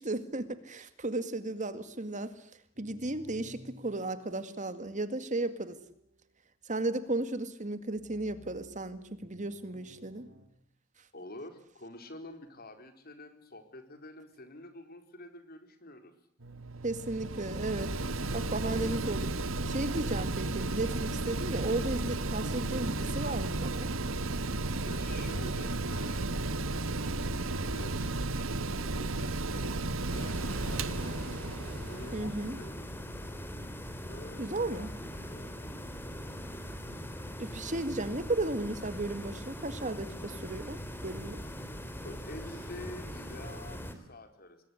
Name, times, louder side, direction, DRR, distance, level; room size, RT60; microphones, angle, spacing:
voice 1, 0.0-2.3 2.8-5.8 6.7-10.3 16.8-18.0 18.3-19.3 19.7-23.9 32.1-32.6 34.4-34.9 37.4-41.4, right 2 dB, 40° right, 11 dB, 2.0 m, -34 dB
sound 1, 2.7-6.3 7.8-10.5, equal, 60° right, 7.2 m, -55 dB
voice 2, 11.1-16.1 24.8-26.3 26.8-31.2 31.9-32.9 34.1-35.6 42.0-44.6, left 1 dB, 50° left, 7 dB, 4.4 m, -48 dB
Mechanical fan, 16.4-32.7, right 2 dB, 80° right, 1.6 m, -34 dB
sound 2, 30.1-43.9, equal, 10° left, 3.3 m, -41 dB
27.0 x 21.0 x 10.0 m, 0.67 s
head